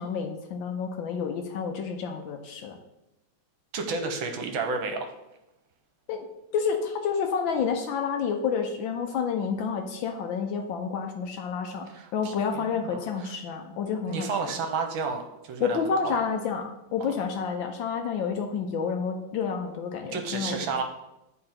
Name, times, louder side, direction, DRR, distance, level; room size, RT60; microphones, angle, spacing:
voice 1, 0.0-2.8 6.1-6.3 6.5-11.9 12.1-14.5 15.6-20.7, left 6 dB, 70° left, 4 dB, 1.3 m, -29 dB
voice 2, 3.7-5.1 11.9-13.3 14.1-15.8 16.0-16.2 20.1-20.8, right 4 dB, 70° right, 5 dB, 1.5 m, -31 dB
9.7 x 3.9 x 4.3 m, 0.91 s
omnidirectional pair, 2.4 m